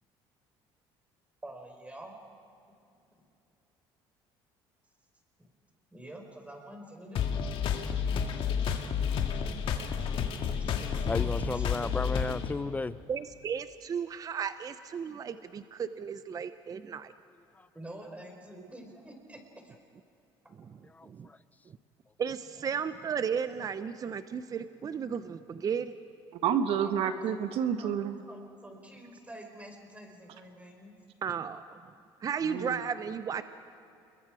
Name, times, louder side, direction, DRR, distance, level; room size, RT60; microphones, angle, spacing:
voice 1, 1.4-2.2 5.4-5.5 5.9-7.5 10.7-11.7 17.7-19.7 22.7-22.8 26.8-27.2 27.8-27.9 28.3-31.0, right 1 dB, 15° right, 3 dB, 4.6 m, -47 dB
sound 1, 7.2-12.5, left 7 dB, 60° left, 2.0 m, -30 dB
voice 2, 11.1-13.0 21.0-21.4, left 3 dB, 15° left, 16 dB, 0.6 m, -33 dB
voice 3, 13.1-17.1 21.0-21.3 22.2-25.9 31.2-31.8 32.2-33.4, right 7 dB, 35° right, 12 dB, 0.7 m, -34 dB
voice 4, 26.3-28.2 32.4-32.8, right 8 dB, 70° right, 8 dB, 1.5 m, -29 dB
29.0 x 21.5 x 5.0 m, 2.6 s
supercardioid pair, 95°, 10 cm